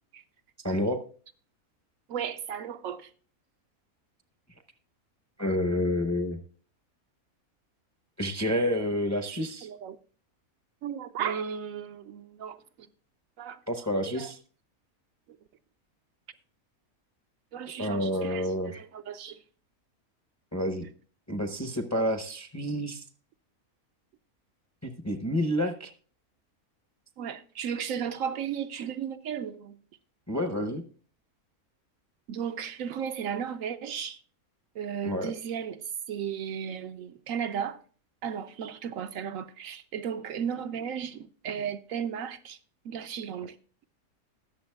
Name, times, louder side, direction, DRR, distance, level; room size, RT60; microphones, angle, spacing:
voice 1, 0.6-1.0 5.4-6.4 8.2-9.7 13.7-14.4 17.8-18.8 20.5-20.9 21.3-23.0 24.8-25.9 30.3-30.8 35.0-35.3, equal, 15° left, 0.6 m, -29 dB
voice 2, 2.1-3.1 9.6-10.0 10.8-12.6 13.4-13.6 14.1-14.3 17.5-19.4 27.2-29.8 32.3-34.2 34.7-37.8 38.2-42.6 42.8-43.6, right 8 dB, 70° right, 0.9 m, -35 dB
20.0 x 7.0 x 2.2 m
omnidirectional pair, 1.5 m